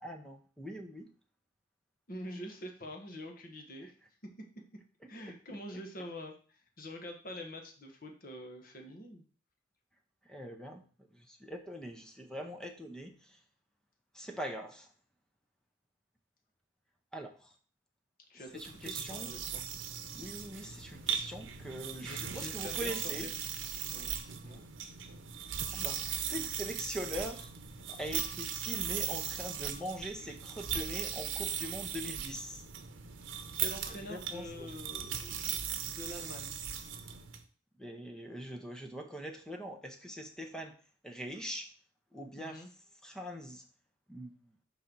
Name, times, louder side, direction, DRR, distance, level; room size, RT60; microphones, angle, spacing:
voice 1, 0.0-1.1 3.8-3.9 5.7-5.8 10.2-10.8 11.1-13.4 14.1-14.9 17.1-17.5 18.5-19.3 20.1-23.3 25.7-27.5 27.9-32.6 33.9-34.7 37.8-40.7 41.0-41.7 42.1-42.7 43.0-43.6 44.1-44.5, equal, 5° left, 4 dB, 0.7 m, -42 dB
voice 2, 2.1-3.9 4.4-4.5 5.1-9.2 18.3-19.6 22.0-23.0 23.9-24.6 33.5-36.5 41.3-41.4 42.3-42.7, equal, 45° left, 3 dB, 1.2 m, -46 dB
sound 1, 18.5-37.4, right 8 dB, 85° right, 0.8 m, -38 dB
5.4 x 3.9 x 5.9 m, 0.40 s
head